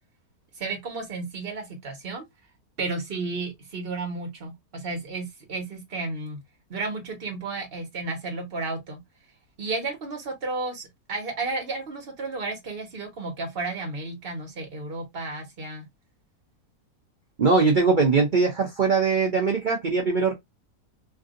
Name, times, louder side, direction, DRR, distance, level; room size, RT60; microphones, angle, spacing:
voice 1, 0.5-2.2 2.8-6.4 6.7-9.0 9.6-15.8, right 3 dB, 40° right, 1.3 m, -32 dB
voice 2, 17.4-20.3, right 4 dB, 90° right, 0.4 m, -21 dB
3.4 x 2.6 x 2.4 m
omnidirectional pair, 1.7 m